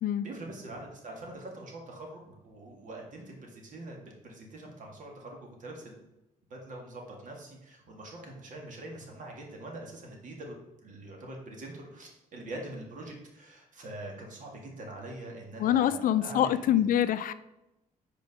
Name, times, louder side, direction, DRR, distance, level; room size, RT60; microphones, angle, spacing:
voice 1, 0.2-4.0 4.2-6.0 6.5-16.9, right 1 dB, 60° right, 0 dB, 1.9 m, -44 dB
voice 2, 15.6-17.3, left 11 dB, 70° left, 13 dB, 0.4 m, -25 dB
5.2 x 4.6 x 5.4 m, 0.93 s
cardioid pair, 100°, 15 cm